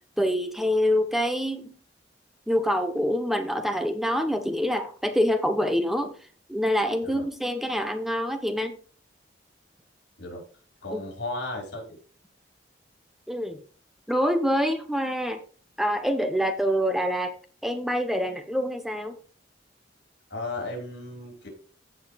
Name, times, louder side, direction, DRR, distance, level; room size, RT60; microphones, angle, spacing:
voice 1, 0.2-1.7 2.5-6.2 6.5-8.8 10.9-11.0 13.3-13.6 14.1-15.4 15.8-17.3 17.6-19.2, equal, ahead, 8 dB, 0.8 m, -26 dB
voice 2, 10.8-12.0 20.3-21.5, left 2 dB, 70° left, 0 dB, 5.0 m, -35 dB
15.0 x 5.2 x 3.4 m, 0.40 s
head